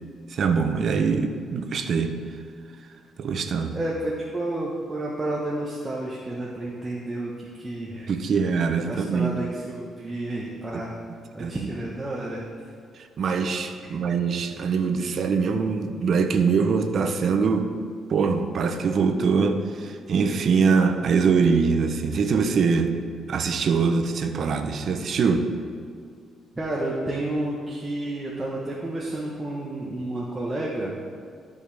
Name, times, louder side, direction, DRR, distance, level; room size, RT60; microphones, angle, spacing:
voice 1, 0.3-2.2 3.2-3.8 8.1-9.4 10.7-10.8 11.4-11.5 12.9-17.7 18.1-23.0 23.3-25.5, right 5 dB, 60° right, 7 dB, 0.7 m, -23 dB
voice 2, 3.7-8.1 8.9-10.9 11.3-12.4 26.6-30.9, right 1 dB, 15° right, -5 dB, 1.2 m, -30 dB
12.5 x 5.4 x 3.4 m, 2.2 s
cardioid pair, 90°, 0 cm